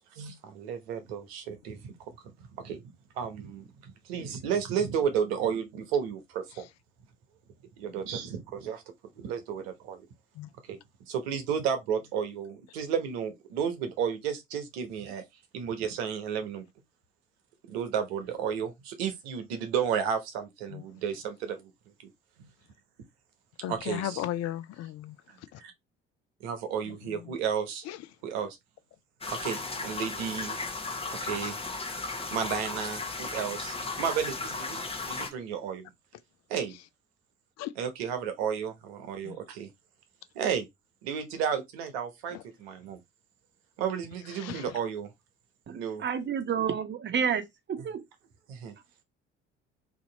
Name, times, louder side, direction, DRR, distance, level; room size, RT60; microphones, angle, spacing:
voice 1, 0.2-1.9 2.4-2.8 3.2-3.6 4.1-6.7 7.8-8.8 9.2-10.0 10.7-10.8 11.1-15.2 15.5-16.6 17.7-21.7 22.4-22.5 23.7-24.1 25.3-25.7 26.4-27.8 28.2-28.6 29.4-30.6 31.2-31.6 32.3-35.9 36.5-36.8 37.8-39.7 40.3-40.7 41.0-43.0 43.8-45.1 45.7-46.0 47.8-47.9 48.5-48.8, right 7 dB, 75° right, 1.0 m, -32 dB
voice 2, 23.6-25.6 26.9-27.3 27.8-28.1 37.6-37.7 39.2-39.4 42.3-42.4 44.3-44.8, left 12 dB, 55° left, 0.5 m, -37 dB
sound 1, 29.2-35.3, left 3 dB, 20° left, 1.0 m, -35 dB
voice 3, 45.7-47.4 47.7-48.0, right 7 dB, 35° right, 0.9 m, -30 dB
2.9 x 2.8 x 3.9 m
hypercardioid pair, 55°, 32 cm